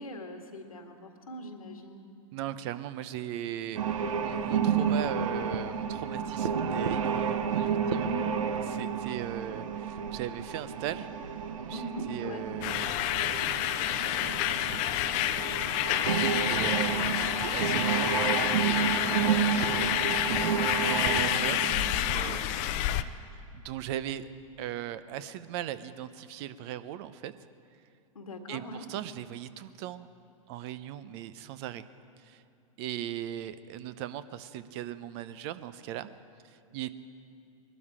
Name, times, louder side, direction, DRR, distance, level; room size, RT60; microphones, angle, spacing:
voice 1, 0.0-2.0 7.8-8.2 11.7-12.4 28.2-28.9, equal, 90° left, 4 dB, 1.8 m, -40 dB
voice 2, 2.3-8.1 8.7-11.1 11.7-15.7 16.1-20.1 20.8-21.7 22.1-23.1 23.5-24.3 24.6-27.3 28.5-30.1 30.5-31.8 32.2-32.4 32.8-36.1 36.4-36.9, right 12 dB, 50° right, 14 dB, 0.7 m, -39 dB
sound 1, 3.7-22.4, right 7 dB, 70° right, 1.1 m, -31 dB
sound 2, 12.6-23.0, left 12 dB, 45° left, 0.6 m, -29 dB
21.5 x 12.5 x 5.0 m, 2.5 s
hypercardioid pair, 105°, 18 cm